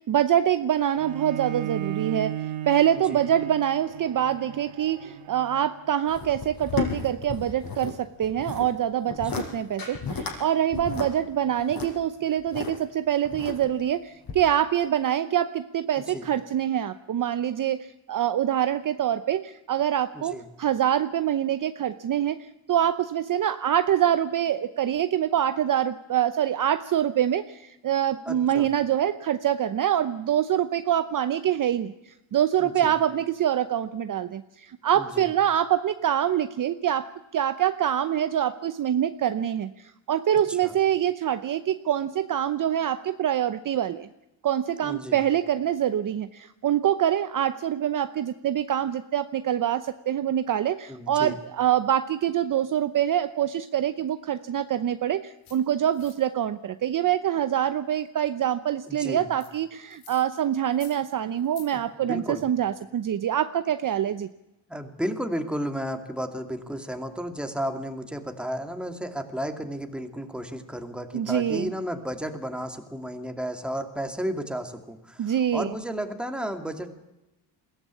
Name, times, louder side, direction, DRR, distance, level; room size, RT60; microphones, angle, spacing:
voice 1, 0.0-44.1 44.4-64.3 71.1-71.7 75.2-75.8, right 10 dB, 40° right, 11 dB, 0.8 m, -25 dB
Bowed string instrument, 1.0-6.2, right 12 dB, 65° right, 2.0 m, -36 dB
sound 1, 6.1-7.9 8.2-8.7 9.1-9.5 9.8-10.4 10.7-12.7 13.2-13.8 14.3-14.4, left 6 dB, 45° left, 6.1 m, -33 dB
voice 2, 9.1-9.5 16.0-16.2 20.1-20.4 28.3-28.7 32.6-32.9 34.9-35.3 40.5-40.7 44.8-45.2 50.9-51.4 58.9-59.3 61.7-62.5 64.7-76.9, equal, ahead, 5 dB, 2.5 m, -33 dB
sound 2, 55.4-55.6 55.9-56.1 59.4-59.5 59.9-60.3 60.6-61.0 61.4-61.6, left 7 dB, 75° left, 4.8 m, -48 dB
21.5 x 16.0 x 8.5 m, 0.96 s
cardioid pair, 95°, 48 cm